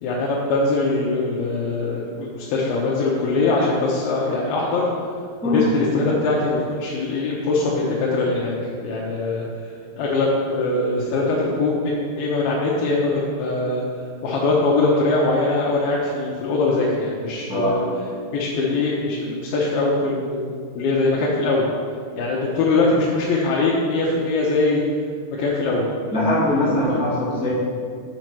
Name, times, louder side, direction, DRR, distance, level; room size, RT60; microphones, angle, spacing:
voice 1, 0.0-4.9 5.5-8.5 8.8-9.5 10.0-13.8 14.2-17.8 18.3-21.7 22.2-24.8 25.4-25.9, left 3 dB, 85° left, -5 dB, 2.8 m, -22 dB
voice 2, 26.1-27.5, left 1 dB, 5° right, -8 dB, 0.7 m, -21 dB
7.9 x 5.3 x 6.0 m, 2.1 s
omnidirectional pair, 4.2 m